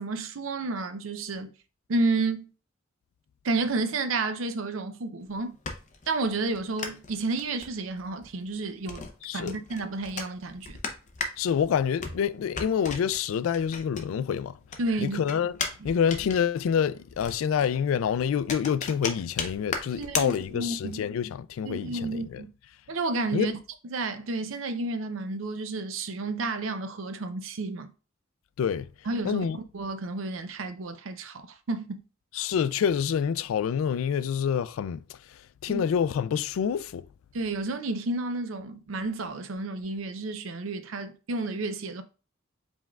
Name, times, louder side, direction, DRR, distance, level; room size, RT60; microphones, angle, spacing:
voice 1, 0.0-1.5 1.9-2.5 3.4-5.6 6.1-9.1 9.3-10.8 14.8-15.2 15.8-15.9 20.0-21.0 21.6-22.5 22.9-23.5 23.8-27.9 29.1-32.0 35.7-35.9 37.3-42.0, right 3 dB, 70° right, 0.6 m, -31 dB
sound 1, 5.2-14.4 14.7-20.9, left 5 dB, 35° left, 0.6 m, -37 dB
voice 2, 9.2-9.5 11.4-14.6 15.0-15.5 15.8-22.4 23.3-23.5 28.6-28.9 29.2-29.6 32.3-35.2 35.6-37.0, left 7 dB, 80° left, 0.3 m, -27 dB
5.1 x 3.6 x 2.3 m
head